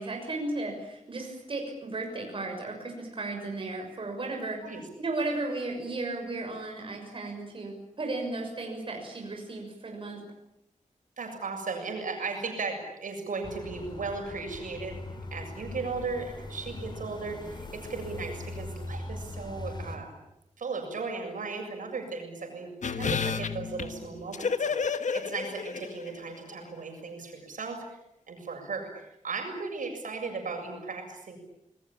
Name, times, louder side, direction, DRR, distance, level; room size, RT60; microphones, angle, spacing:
voice 1, 0.0-4.6 5.0-10.2, right 2 dB, 40° right, 1 dB, 6.5 m, -35 dB
voice 2, 11.2-15.0 15.3-20.1 20.6-28.0 28.3-31.4, right 4 dB, 90° right, 3 dB, 7.4 m, -36 dB
sound 1, 13.4-20.0, left 2 dB, 35° left, 3.6 m, -40 dB
sound 2, 22.8-26.3 26.6-26.7, left 5 dB, 70° left, 1.4 m, -31 dB
28.0 x 20.5 x 8.9 m, 0.84 s
wide cardioid pair, 180°, 13 cm